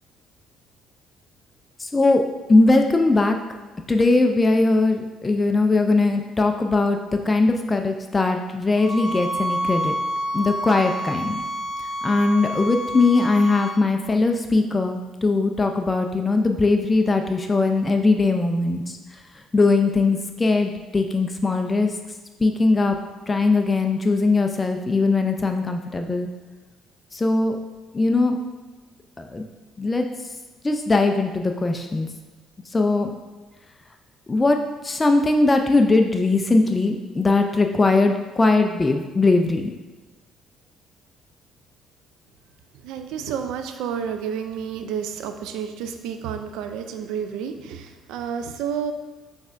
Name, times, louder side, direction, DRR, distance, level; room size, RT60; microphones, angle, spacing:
voice 1, 1.8-2.2 2.5-3.4 3.9-7.0 7.3-9.9 10.3-11.4 12.0-19.0 19.5-21.9 22.4-23.0 23.3-26.3 27.1-27.6 27.9-28.4 29.3-29.4 29.8-30.0 30.6-32.1 32.7-33.1 34.3-34.6 34.8-39.7, left 3 dB, 20° left, 5 dB, 0.3 m, -20 dB
sound 1, 8.8-13.8, equal, 45° left, 1.2 m, -28 dB
voice 2, 42.8-48.9, right 7 dB, 85° right, 7 dB, 0.4 m, -30 dB
6.3 x 3.4 x 2.5 m, 1.3 s
cardioid pair, 85°, 0 cm